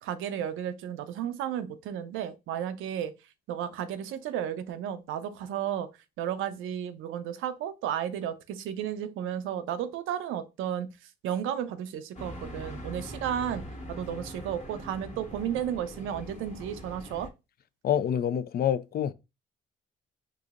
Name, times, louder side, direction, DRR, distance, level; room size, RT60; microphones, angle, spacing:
voice 1, 0.0-3.1 3.5-5.9 6.2-10.9 11.2-17.3, right 9 dB, 90° right, 0.6 m, -33 dB
sound 1, 12.1-17.3, equal, 35° left, 1.2 m, -42 dB
voice 2, 17.8-19.1, left 9 dB, 50° left, 0.4 m, -27 dB
4.8 x 2.7 x 2.4 m
cardioid pair, 90°, 20 cm